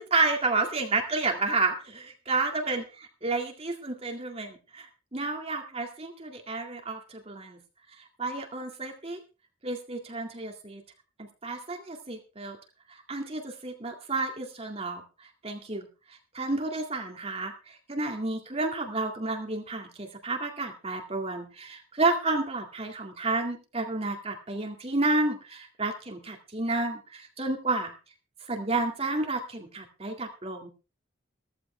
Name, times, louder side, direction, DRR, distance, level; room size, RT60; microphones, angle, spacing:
voice 1, 0.0-7.6 8.2-9.2 9.6-10.8 11.4-12.6 12.9-15.0 15.4-15.9 16.3-27.9 28.5-30.7, right 3 dB, 30° right, 3 dB, 2.1 m, -31 dB
15.5 x 14.5 x 3.3 m, 0.31 s
head